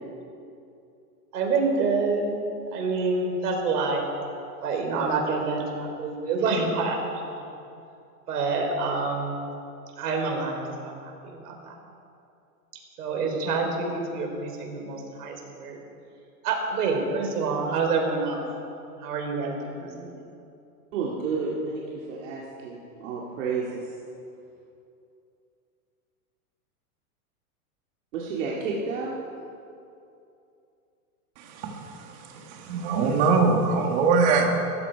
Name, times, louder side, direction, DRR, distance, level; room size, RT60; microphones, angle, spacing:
voice 1, 1.3-2.4 2.7-4.0 4.6-7.3 8.3-9.4 10.0-11.0 11.2-11.8 13.0-15.8 16.4-18.4 19.0-20.3, right 4 dB, 85° right, 2 dB, 3.9 m, -27 dB
voice 2, 20.9-23.9 28.1-29.2, right 4 dB, 55° right, -4 dB, 2.2 m, -31 dB
voice 3, 31.4-34.6, right 4 dB, 30° right, 2 dB, 1.6 m, -23 dB
16.5 x 14.5 x 4.6 m, 2.6 s
supercardioid pair, 180°, 45 cm